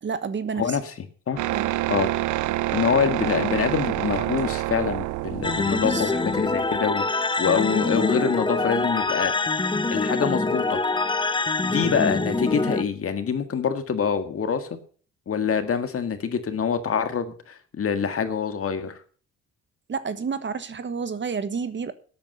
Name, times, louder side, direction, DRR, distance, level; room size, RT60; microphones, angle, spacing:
voice 1, 0.0-0.8 1.5-1.7 5.7-6.2 19.9-21.9, right 5 dB, 40° right, 12 dB, 1.2 m, -30 dB
voice 2, 0.6-1.4 1.9-2.1 2.7-9.3 9.9-10.8 11.6-14.7 15.3-18.9, left 6 dB, 50° left, 9 dB, 1.8 m, -25 dB
sound 1, 1.4-6.8, right 16 dB, 80° right, 0.6 m, -27 dB
sound 2, 5.4-12.8, left 3 dB, 15° left, 0.9 m, -25 dB
12.0 x 8.7 x 6.7 m, 0.43 s
cardioid pair, 90°, 30 cm